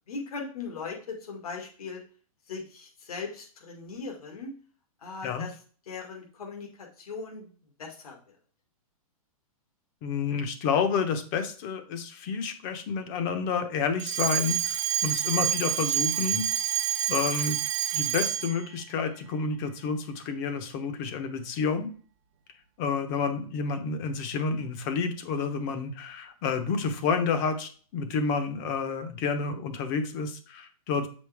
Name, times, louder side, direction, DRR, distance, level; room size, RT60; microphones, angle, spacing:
voice 1, 0.1-2.0 2.5-4.5 5.0-5.5 5.9-7.5 7.8-8.4, left 4 dB, 80° left, 1 dB, 2.2 m, -39 dB
voice 2, 10.0-16.4 17.1-17.6 17.9-21.9 22.8-31.1, left 5 dB, 35° left, 7 dB, 1.0 m, -29 dB
Alarm, 14.0-18.6, right 10 dB, 55° right, 0.9 m, -28 dB
7.3 x 5.3 x 3.5 m, 0.41 s
hypercardioid pair, 155°, 19 cm